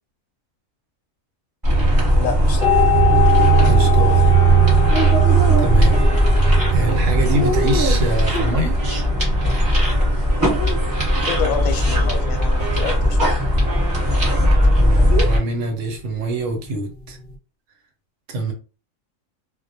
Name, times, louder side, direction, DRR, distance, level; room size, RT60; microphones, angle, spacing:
sound 1, 1.6-15.4, right 2 dB, 15° right, 0.9 m, -17 dB
voice 1, 2.1-2.7 11.2-13.4, left 6 dB, 80° left, 1.0 m, -28 dB
sound 2, 2.6-17.4, left 5 dB, 60° left, 0.7 m, -26 dB
Wind instrument woodwind instrument, 3.4-15.2, right 3 dB, 50° right, 0.9 m, -37 dB
voice 2, 3.6-4.3 5.6-6.1 6.7-8.8 14.4-17.2 18.3-18.5, right 2 dB, 75° right, 0.9 m, -25 dB
2.2 x 2.1 x 2.6 m
omnidirectional pair, 1.4 m